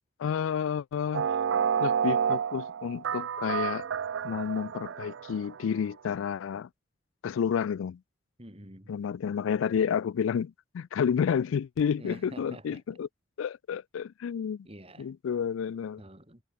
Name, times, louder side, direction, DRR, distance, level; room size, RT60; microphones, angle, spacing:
voice 1, 0.2-1.3 1.8-3.9 4.2-6.7 7.2-8.0 8.9-13.1 13.4-14.7 15.0-16.0, left 7 dB, 75° left, 0.3 m, -30 dB
sound 1, 1.1-5.6, right 7 dB, 65° right, 0.3 m, -30 dB
voice 2, 8.4-9.0 12.0-13.0 14.6-15.1 16.0-16.4, right 1 dB, 30° right, 4.2 m, -48 dB
head